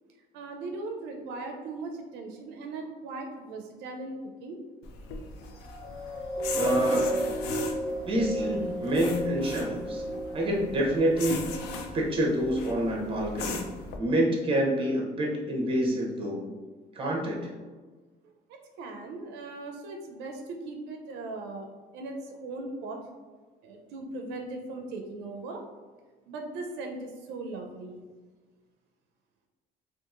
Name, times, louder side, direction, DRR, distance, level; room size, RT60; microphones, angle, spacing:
voice 1, 0.3-4.6 18.5-23.0 23.6-25.6 26.3-28.0, right 2 dB, 90° right, 3 dB, 0.4 m, -39 dB
sound 1, 4.8-14.0, left 4 dB, 85° left, 0.4 m, -39 dB
sound 2, 5.4-12.1 12.7-12.9, right 1 dB, ahead, 0.8 m, -33 dB
voice 2, 6.6-7.0 8.1-10.0 10.3-11.5 11.9-13.6 14.0-16.5 16.9-17.5, right 1 dB, 30° right, -1 dB, 0.7 m, -27 dB
2.8 x 2.4 x 2.4 m, 1.4 s
cardioid pair, 110°, 17 cm